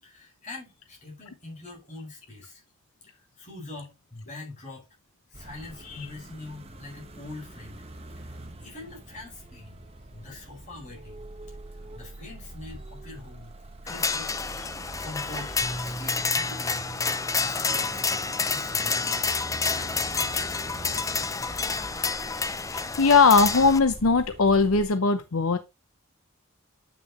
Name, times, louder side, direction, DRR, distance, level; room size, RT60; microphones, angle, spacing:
voice 1, 0.0-2.6 3.0-4.9 5.3-7.8 8.2-11.2 11.7-13.6 13.8-14.6 15.0-16.9 17.4-18.2 18.5-19.3 19.7-20.6 20.8-21.4, left 2 dB, 35° left, 4.7 m, -44 dB
sound 1, 5.3-24.9, right 1 dB, 30° right, 1.1 m, -44 dB
sound 2, 13.9-23.8, left 4 dB, 15° left, 0.4 m, -29 dB
Bass guitar, 15.6-20.1 20.9-21.9, right 1 dB, ahead, 4.2 m, -43 dB
voice 2, 22.7-25.6, left 4 dB, 90° left, 0.8 m, -20 dB
8.7 x 6.1 x 3.0 m
head